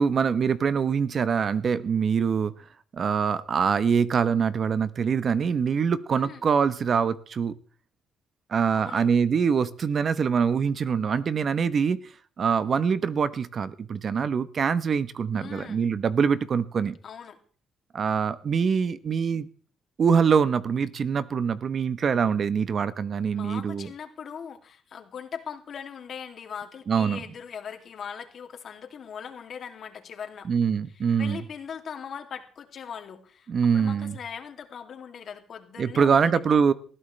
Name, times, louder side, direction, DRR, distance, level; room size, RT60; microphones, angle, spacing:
voice 1, 0.0-2.5 2.9-7.6 8.5-12.0 12.4-17.0 17.9-19.5 20.0-23.9 26.9-27.2 30.5-31.4 33.5-34.1 35.8-36.7, right 6 dB, 50° right, 15 dB, 0.9 m, -24 dB
voice 2, 8.7-9.1 15.4-15.8 17.0-17.4 23.3-30.5 31.2-36.6, left 7 dB, 60° left, 5 dB, 2.6 m, -40 dB
20.0 x 14.5 x 3.3 m, 0.42 s
cardioid pair, 90°, 0 cm